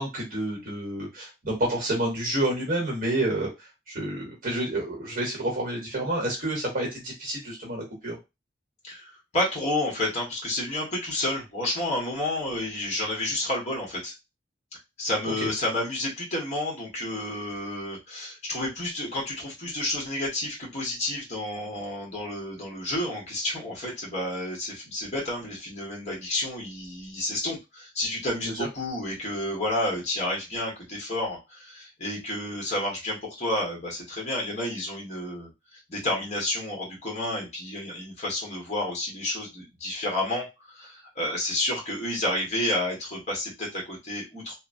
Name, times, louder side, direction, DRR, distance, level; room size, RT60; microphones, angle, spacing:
voice 1, 0.0-3.5 3.9-8.2 15.4-15.5, right 1 dB, 50° right, -2 dB, 1.0 m, -29 dB
voice 2, 8.8-14.1 15.0-44.5, left 1 dB, 35° left, -2 dB, 1.2 m, -30 dB
3.1 x 2.1 x 2.5 m, 0.24 s
head